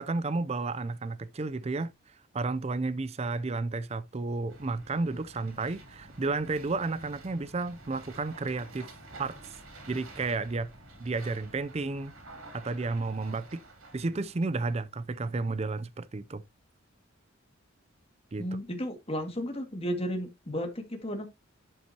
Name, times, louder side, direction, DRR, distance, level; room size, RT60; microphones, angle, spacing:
voice 1, 0.0-1.9 2.3-8.9 9.2-9.6 9.9-10.7 11.0-12.1 12.5-13.6 13.9-16.4 18.3-18.5, right 3 dB, 30° right, 0.5 m, -32 dB
sound 1, 4.5-15.2, right 2 dB, 90° right, 3.5 m, -50 dB
voice 2, 18.4-21.3, equal, 30° left, 2.1 m, -33 dB
11.5 x 5.6 x 2.8 m
head